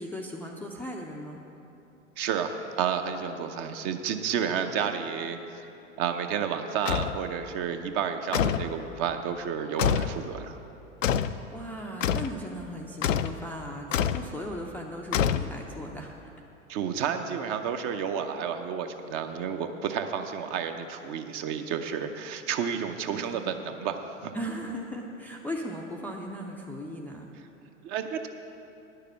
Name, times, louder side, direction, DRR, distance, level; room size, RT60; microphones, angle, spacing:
voice 1, 0.0-1.4 11.5-16.2 23.1-23.6 24.3-27.3, equal, 5° left, -1 dB, 0.5 m, -37 dB
voice 2, 2.2-5.6 6.0-10.6 16.7-24.3 27.3-27.5 27.8-28.3, right 7 dB, 35° right, 7 dB, 0.7 m, -31 dB
sound 1, 6.9-7.2 8.3-8.7 9.8-10.2 11.0-11.4 12.0-12.4 13.0-13.4 13.9-14.3 15.1-15.8, left 8 dB, 75° left, 0.5 m, -26 dB
10.5 x 6.7 x 7.4 m, 2.8 s
figure-of-eight pair, 90°, 39 cm